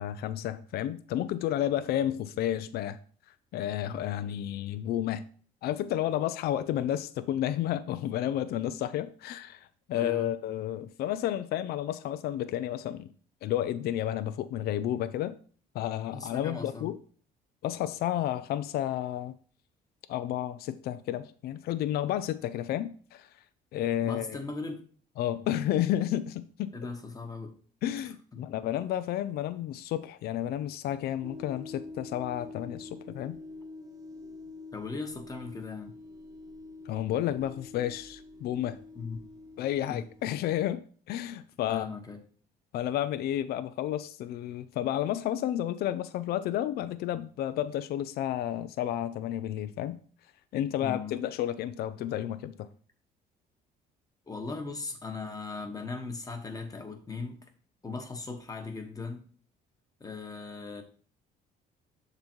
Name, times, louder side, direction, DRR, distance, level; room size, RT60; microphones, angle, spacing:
voice 1, 0.0-3.0 3.5-5.2 5.6-13.1 13.4-15.4 15.7-17.0 17.6-19.3 20.1-23.3 23.7-24.4 25.2-26.7 27.8-33.4 36.9-38.8 39.6-40.8 41.1-41.9 42.7-50.0 50.5-52.7, left 12 dB, 70° left, 0.5 m, -31 dB
voice 2, 9.9-10.3 16.1-16.9 24.0-24.8 26.7-27.5 28.3-28.4 34.7-35.9 38.9-39.2 39.9-40.0 41.7-42.2 50.8-51.2 54.3-57.5 57.8-59.2 60.0-60.8, left 4 dB, 20° left, 1.1 m, -38 dB
sound 1, 31.2-40.3, left 3 dB, 20° right, 0.8 m, -46 dB
7.0 x 4.0 x 4.4 m
cardioid pair, 110°, 17 cm